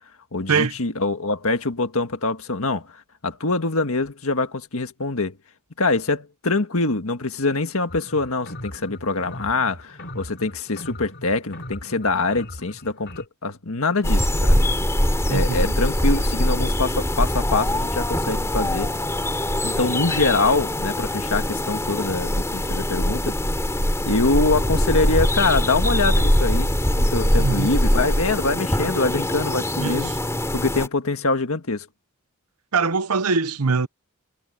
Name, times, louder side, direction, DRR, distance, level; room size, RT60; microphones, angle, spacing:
voice 1, 0.3-2.9 3.2-5.3 5.8-14.6 15.3-18.9 19.3-23.3 24.0-26.7 27.0-30.1 30.5-31.9, left 3 dB, 65° left, 1.8 m, -24 dB
sound 1, 7.9-13.2, left 1 dB, 50° left, 3.9 m, -39 dB
sound 2, 14.0-30.9, left 1 dB, 15° left, 3.0 m, -22 dB
voice 2, 15.3-15.7 27.4-27.7 29.8-30.2 32.7-33.9, right 4 dB, 85° right, 0.9 m, -22 dB
head